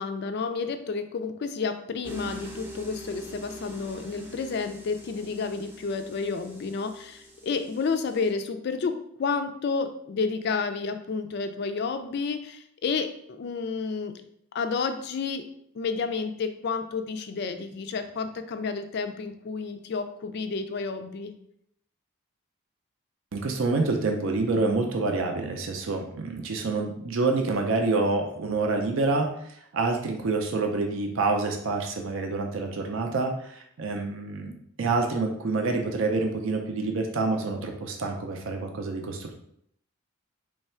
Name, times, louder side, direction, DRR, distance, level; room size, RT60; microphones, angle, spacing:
voice 1, 0.0-14.1 14.5-15.5 15.7-21.3, left 4 dB, 50° left, 8 dB, 0.3 m, -30 dB
sound 1, 2.0-8.3, equal, 10° right, 0.5 m, -44 dB
voice 2, 23.3-34.5 34.8-39.4, right 3 dB, 60° right, 3 dB, 0.5 m, -27 dB
3.2 x 2.3 x 4.2 m, 0.70 s
head